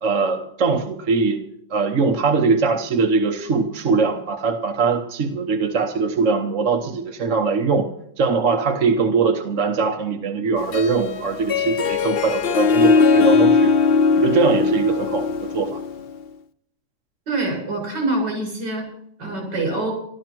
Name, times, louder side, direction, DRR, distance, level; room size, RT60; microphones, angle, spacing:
voice 1, 0.0-1.4 1.7-7.9 8.2-13.7 14.2-15.8, right 4 dB, 50° right, 5 dB, 1.2 m, -21 dB
Harp, 10.6-16.1, left 5 dB, 80° left, 0.5 m, -19 dB
voice 2, 17.3-18.9 19.2-19.9, right 2 dB, 75° right, 0 dB, 8.3 m, -25 dB
13.5 x 13.5 x 6.0 m, 0.70 s
omnidirectional pair, 1.9 m